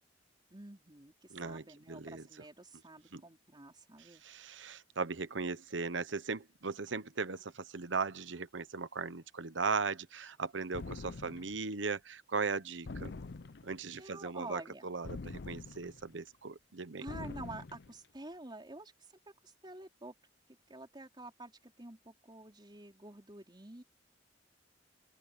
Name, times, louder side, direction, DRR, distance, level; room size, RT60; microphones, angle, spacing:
voice 1, 0.5-4.5 14.0-14.9 17.0-20.1 20.7-23.8, right 2 dB, 25° right, 4.5 m, -49 dB
voice 2, 1.3-2.2 3.1-3.2 4.2-13.2 13.6-17.1, right 4 dB, 80° right, 1.0 m, -38 dB
sound 1, 10.7-11.6 12.9-13.8 15.0-16.1 17.1-17.9, left 3 dB, 65° left, 0.6 m, -44 dB
open air
head